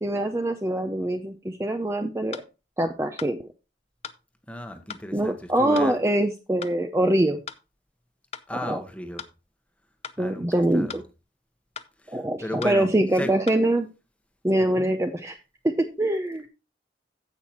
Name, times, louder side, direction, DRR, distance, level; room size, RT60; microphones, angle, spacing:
voice 1, 0.0-2.4 2.8-3.4 5.1-7.4 8.6-8.8 10.2-11.0 12.1-13.9 14.4-15.4 15.6-16.5, right 1 dB, 15° right, 0.6 m, -24 dB
sound 1, 2.3-2.5 3.2-3.4 4.0-4.2 4.9-5.1 5.7-5.9 6.6-6.8 7.5-7.6 8.3-8.5 9.2-9.4 10.0-10.2 10.9-11.1 11.8-11.9 12.6-12.8 13.5-13.6, left 7 dB, 35° left, 0.6 m, -39 dB
voice 2, 4.5-6.1 8.5-9.2 10.2-11.0 12.0-12.9 13.2-13.3 14.8-14.9, left 1 dB, 5° left, 1.1 m, -35 dB
15.5 x 5.7 x 3.0 m
head